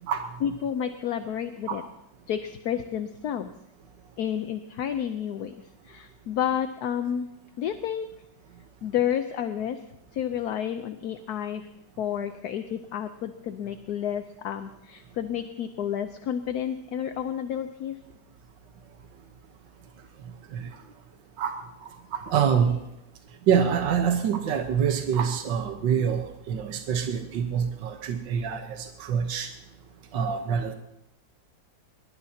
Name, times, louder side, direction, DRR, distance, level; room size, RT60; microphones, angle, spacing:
voice 1, 0.4-1.8 2.3-3.5 4.2-5.5 5.8-7.3 7.6-8.1 8.8-9.8 10.1-11.7 12.0-17.9, left 9 dB, 65° left, 8 dB, 1.2 m, -30 dB
voice 2, 22.3-22.8 23.5-26.2 26.5-28.6 29.0-29.5 30.1-30.7, right 7 dB, 75° right, 5 dB, 1.8 m, -25 dB
22.5 x 22.0 x 2.8 m, 0.87 s
omnidirectional pair, 2.0 m